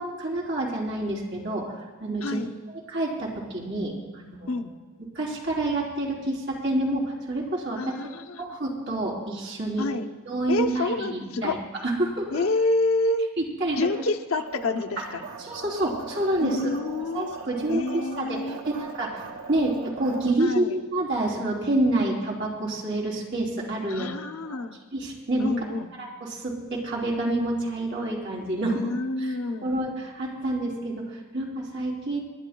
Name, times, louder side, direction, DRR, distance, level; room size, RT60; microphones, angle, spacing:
voice 1, 0.0-2.4 2.7-4.6 5.0-7.8 8.4-9.9 10.3-11.6 11.8-12.4 13.4-13.9 15.4-16.7 17.1-24.1 24.4-24.6 24.9-25.5 26.0-28.8 29.2-29.3 29.6-32.2, right 1 dB, 55° right, -3 dB, 3.6 m, -28 dB
voice 2, 2.2-2.5 4.5-4.7 7.8-8.6 9.8-10.1 10.5-11.6 12.3-13.3 13.8-15.2 16.4-17.4 17.7-18.6 20.4-20.8 23.9-24.8 25.4-25.9 28.6-29.8, left 2 dB, 70° left, 6 dB, 0.8 m, -28 dB
sound 1, 14.4-20.3, right 4 dB, 75° right, 1.1 m, -40 dB
28.0 x 11.0 x 2.3 m, 1.3 s
head